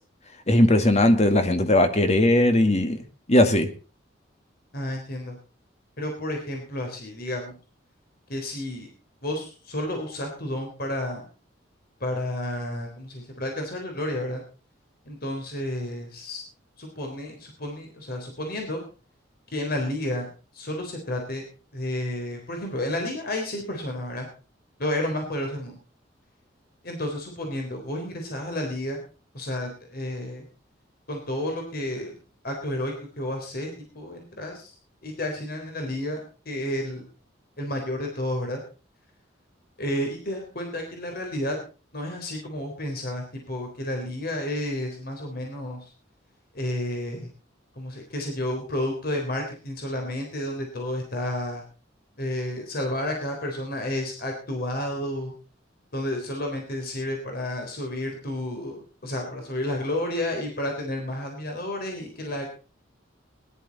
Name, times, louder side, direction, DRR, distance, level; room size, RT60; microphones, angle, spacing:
voice 1, 0.5-3.0 3.3-3.7, left 1 dB, 35° left, 8 dB, 1.8 m, -19 dB
voice 2, 4.7-5.4 6.0-7.6 8.3-8.9 9.2-11.3 12.0-14.4 15.1-16.4 16.8-18.8 19.5-20.3 20.5-21.4 21.7-24.3 24.8-25.8 26.8-29.0 29.3-30.5 31.1-32.1 32.4-33.7 33.9-34.7 35.0-37.0 37.6-38.6 39.8-41.6 41.9-45.8 46.5-47.3 47.8-51.6 52.2-55.3 55.9-62.5, left 1 dB, 55° left, 2 dB, 3.7 m, -31 dB
20.5 x 11.5 x 4.1 m, 0.36 s
head